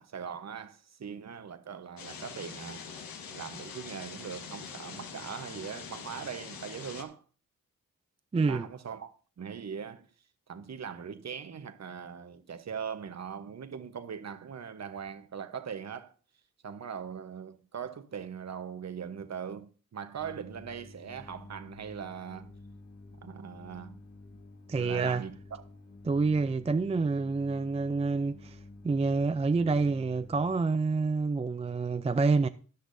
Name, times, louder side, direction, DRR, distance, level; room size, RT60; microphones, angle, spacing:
voice 1, 0.0-2.9 3.3-7.2 8.3-10.0 10.5-16.1 16.6-22.5 23.2-24.0 24.7-25.6, right 7 dB, 50° right, 1.1 m, -41 dB
sound 1, 2.0-7.0, left 6 dB, 85° left, 1.4 m, -44 dB
voice 2, 8.3-8.7 24.7-25.2 26.0-28.6 28.8-32.5, right 4 dB, 20° right, 0.4 m, -27 dB
sound 2, 20.2-30.6, left 2 dB, 45° left, 1.8 m, -51 dB
13.0 x 10.0 x 2.7 m
cardioid pair, 80°, 34 cm